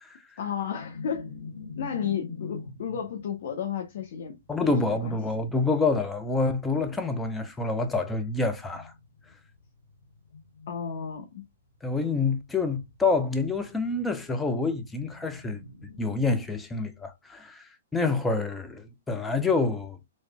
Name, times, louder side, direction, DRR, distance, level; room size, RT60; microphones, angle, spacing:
voice 1, 0.4-1.3 1.8-5.2 10.7-11.4, left 8 dB, 60° left, 0.8 m, -33 dB
sound 1, 0.7-6.0 7.3-11.4 11.7-11.9 12.2-16.0, left 4 dB, 80° left, 1.4 m, -45 dB
voice 2, 4.5-8.9 11.8-15.6 16.0-20.0, left 3 dB, 10° left, 0.7 m, -27 dB
4.1 x 3.1 x 2.3 m
hypercardioid pair, 125°, 0 cm